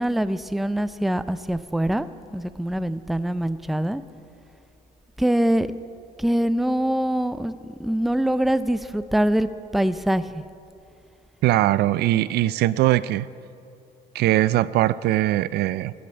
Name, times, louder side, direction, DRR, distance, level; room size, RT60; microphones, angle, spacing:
voice 1, 0.0-2.1 2.3-4.0 5.2-5.7 6.2-10.4, right 1 dB, ahead, 13 dB, 0.4 m, -24 dB
voice 2, 11.4-13.3 14.1-15.9, right 15 dB, 75° right, 18 dB, 0.4 m, -21 dB
12.0 x 9.7 x 8.8 m, 2.5 s
cardioid pair, 110°, 17 cm